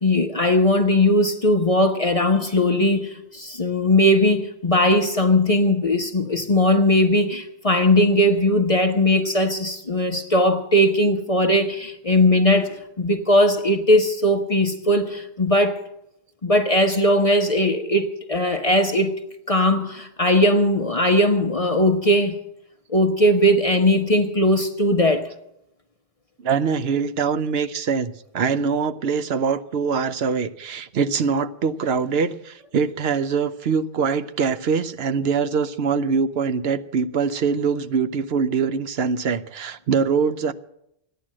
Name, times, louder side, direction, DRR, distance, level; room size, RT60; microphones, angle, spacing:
voice 1, 0.0-15.8 16.4-19.1 19.5-22.4 22.9-25.2, left 1 dB, 35° left, 5 dB, 0.9 m, -19 dB
voice 2, 26.4-40.5, right 5 dB, 65° right, 12 dB, 0.9 m, -23 dB
15.0 x 10.0 x 7.5 m, 0.80 s
omnidirectional pair, 1.2 m